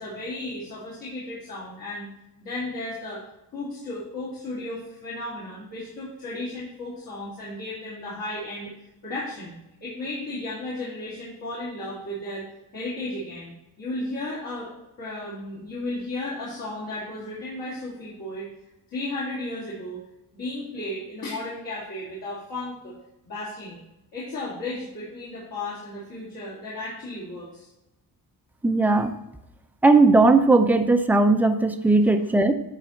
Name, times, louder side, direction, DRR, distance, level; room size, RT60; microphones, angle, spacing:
voice 1, 0.0-2.1 2.4-3.2 3.5-8.7 9.0-9.6 9.8-12.5 12.7-14.7 15.0-18.5 18.9-20.0 20.3-23.0 23.2-23.8 24.1-27.7 28.8-29.0 32.0-32.3, left 2 dB, 65° left, -8 dB, 2.6 m, -34 dB
voice 2, 28.6-29.1 29.8-32.5, right 3 dB, 5° right, 7 dB, 0.4 m, -18 dB
10.5 x 4.1 x 4.3 m, 0.90 s
wide cardioid pair, 155°, 39 cm